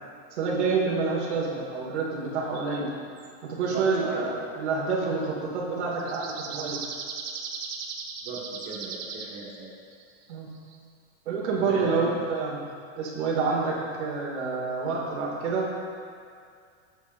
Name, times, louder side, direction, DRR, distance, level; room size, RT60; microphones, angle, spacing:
voice 1, 0.4-2.9 3.4-6.8 10.3-10.5 11.3-12.6 13.0-15.7, right 4 dB, 85° right, -3 dB, 2.5 m, -28 dB
sound 1, 2.5-2.9 3.2-3.3 3.7-3.9 6.0-9.4 9.9-10.0 10.3-10.8 11.8-11.9, right 5 dB, 60° right, 1.2 m, -37 dB
voice 2, 3.7-4.3 8.2-9.7 11.6-12.1, right 4 dB, 35° right, -4 dB, 1.7 m, -37 dB
13.0 x 8.2 x 2.7 m, 2.2 s
supercardioid pair, 150°, 33 cm